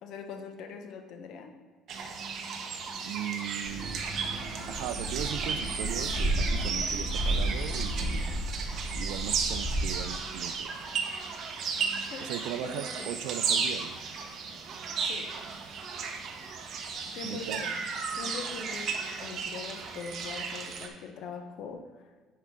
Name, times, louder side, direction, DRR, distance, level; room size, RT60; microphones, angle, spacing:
voice 1, 0.0-1.5 8.0-8.3 12.1-12.3 12.6-13.2 15.0-15.3 17.1-17.8 18.2-18.9 19.2-21.8, left 5 dB, 60° left, 7 dB, 0.7 m, -42 dB
sound 1, 1.9-20.9, right 5 dB, 45° right, 0.8 m, -34 dB
voice 2, 3.0-4.1 4.7-8.4 8.9-10.7 12.2-14.0 17.2-17.7, right 12 dB, 90° right, 13 dB, 0.3 m, -38 dB
sound 2, 3.6-10.0, right 1 dB, 10° left, 1.7 m, -32 dB
10.0 x 4.7 x 3.6 m, 1.5 s
cardioid pair, 155°, 0 cm